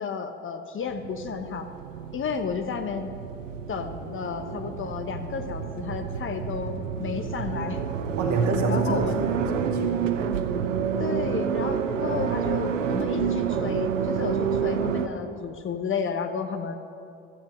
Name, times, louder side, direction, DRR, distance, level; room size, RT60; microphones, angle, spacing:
voice 1, 0.0-1.7 2.1-3.1 3.7-7.8 8.7-9.3 11.0-16.8, left 6 dB, 35° left, 7 dB, 0.9 m, -32 dB
sound 1, 0.9-15.1, right 7 dB, 90° right, 0.7 m, -29 dB
voice 2, 8.2-10.3, right 3 dB, 50° right, 0 dB, 2.2 m, -28 dB
15.5 x 13.5 x 3.1 m, 2.6 s
hypercardioid pair, 65°, 37 cm